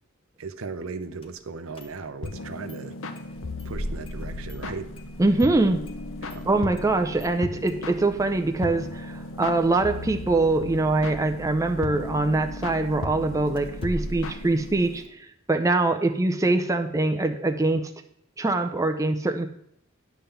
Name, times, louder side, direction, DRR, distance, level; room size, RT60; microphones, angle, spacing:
voice 1, 0.4-3.0 3.6-4.9 6.2-6.4, right 4 dB, 70° right, 10 dB, 0.6 m, -37 dB
Engine starting, 1.2-1.3 1.7-2.4 2.7-2.8 3.2-15.1, right 1 dB, 25° left, 0.9 m, -40 dB
sound 1, 2.2-15.0, left 2 dB, 65° left, 0.8 m, -37 dB
voice 2, 5.2-5.8 6.4-15.2 15.5-17.9 18.4-19.5, right 2 dB, 15° right, 6 dB, 0.5 m, -23 dB
10.0 x 3.8 x 6.9 m, 0.72 s
head